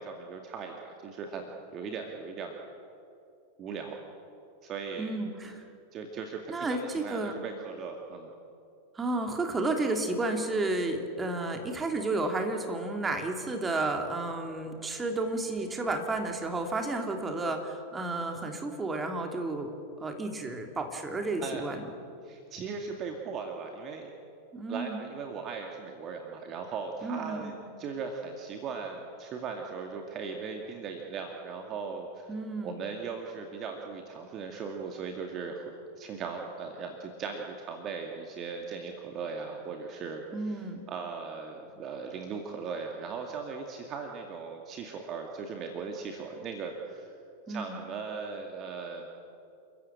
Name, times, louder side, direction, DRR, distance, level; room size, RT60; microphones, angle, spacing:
voice 1, 0.0-2.6 3.6-4.0 4.6-5.2 5.9-8.3 21.4-21.6 22.2-24.1 24.7-32.3 32.6-35.6 36.0-47.1 47.5-49.1, right 5 dB, 30° right, 3 dB, 2.2 m, -38 dB
voice 2, 5.0-5.6 6.5-7.4 8.9-19.7 20.0-21.9 24.5-25.0 27.0-27.6 32.3-32.8 40.3-40.8 47.5-47.8, right 2 dB, 15° right, 4 dB, 3.0 m, -32 dB
30.0 x 14.5 x 8.9 m, 2.6 s
figure-of-eight pair, 90°, 0 cm